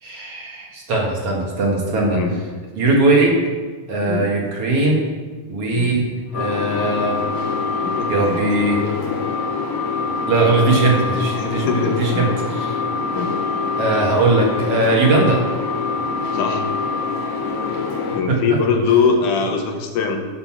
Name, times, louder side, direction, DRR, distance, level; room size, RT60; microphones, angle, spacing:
voice 1, 0.0-2.2 2.8-3.4 3.9-5.1 5.5-6.1 6.3-7.2 8.1-8.8 10.3-12.8 13.8-15.4 18.3-18.4, right 2 dB, 50° right, -2 dB, 2.6 m, -19 dB
sound 1, 6.3-18.2, left 4 dB, 60° left, 2.0 m, -24 dB
voice 2, 7.8-8.4 11.3-12.2 13.1-13.3 16.3-16.6 18.1-20.2, left 5 dB, 85° left, 3 dB, 2.7 m, -21 dB
11.5 x 6.7 x 6.0 m, 1.4 s
omnidirectional pair, 3.5 m